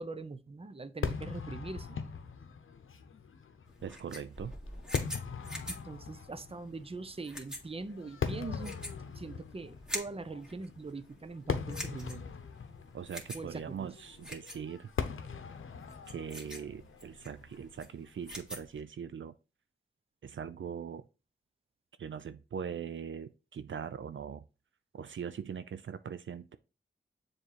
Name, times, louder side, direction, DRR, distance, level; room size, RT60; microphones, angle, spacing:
voice 1, 0.0-2.0 5.7-8.8 9.1-12.2 13.3-13.9, right 3 dB, 30° right, 0.6 m, -42 dB
Fireworks, 1.0-18.4, left 6 dB, 80° left, 0.7 m, -41 dB
sound 1, 3.7-18.8, left 1 dB, 5° right, 2.0 m, -46 dB
voice 2, 3.8-4.5 12.9-14.9 16.1-19.3 20.2-21.0 22.0-24.4 24.9-26.6, right 7 dB, 70° right, 0.4 m, -41 dB
7.0 x 3.2 x 4.3 m
wide cardioid pair, 70°, 20 cm